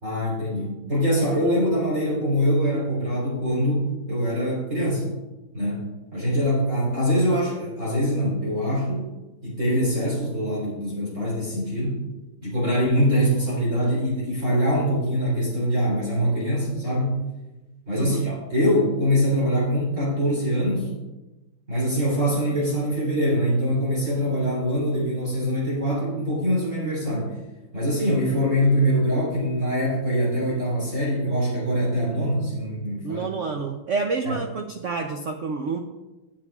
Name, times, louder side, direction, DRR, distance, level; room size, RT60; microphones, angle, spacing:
voice 1, 0.0-5.1 5.5-9.1 9.4-12.0 12.4-17.2 17.9-20.9 21.7-27.4 27.7-33.3 34.2-34.4, equal, 35° right, -7 dB, 4.0 m, -23 dB
voice 2, 33.0-35.8, right 4 dB, 75° right, 5 dB, 0.7 m, -28 dB
21.0 x 7.3 x 2.4 m, 1.1 s
omnidirectional pair, 2.2 m